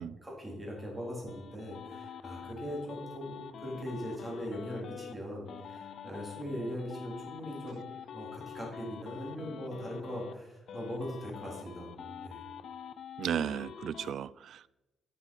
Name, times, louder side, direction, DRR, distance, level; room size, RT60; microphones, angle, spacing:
voice 1, 0.0-7.9 8.1-12.4, equal, 15° right, -3 dB, 3.2 m, -40 dB
sound 1, 0.8-5.1 5.5-10.4 10.7-14.1, left 8 dB, 60° left, 0.5 m, -46 dB
voice 2, 13.2-14.7, right 9 dB, 65° right, 19 dB, 0.3 m, -34 dB
11.0 x 6.4 x 5.2 m, 0.97 s
wide cardioid pair, 165°, 0 cm